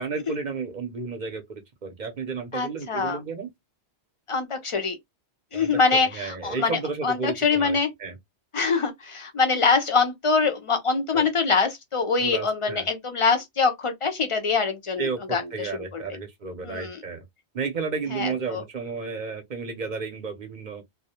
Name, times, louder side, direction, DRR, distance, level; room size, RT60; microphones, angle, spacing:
voice 1, 0.0-3.5 5.5-5.7 6.1-8.1 11.1-11.2 12.2-12.9 15.0-17.2 17.5-20.8, right 4 dB, 50° right, 0.6 m, -32 dB
voice 2, 2.5-3.2 4.3-5.0 5.5-7.9 8.5-16.0 16.6-17.0 18.1-18.6, left 4 dB, 50° left, 0.3 m, -24 dB
2.2 x 2.0 x 2.8 m
omnidirectional pair, 1.2 m